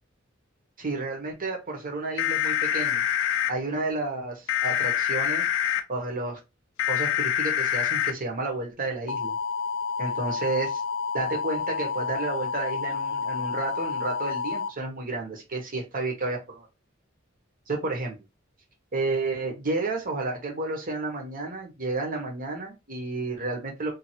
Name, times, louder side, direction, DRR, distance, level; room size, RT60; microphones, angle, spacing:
voice 1, 0.8-3.0 3.5-5.5 5.9-6.4 6.9-9.3 10.0-10.8 11.1-16.7 17.7-18.1 18.9-23.9, right 3 dB, 45° right, 1 dB, 1.1 m, -31 dB
sound 1, 2.2-3.5 4.5-5.8 6.8-8.1 9.1-14.7, left 8 dB, 85° left, 0.4 m, -27 dB
2.7 x 2.6 x 2.8 m, 0.25 s
head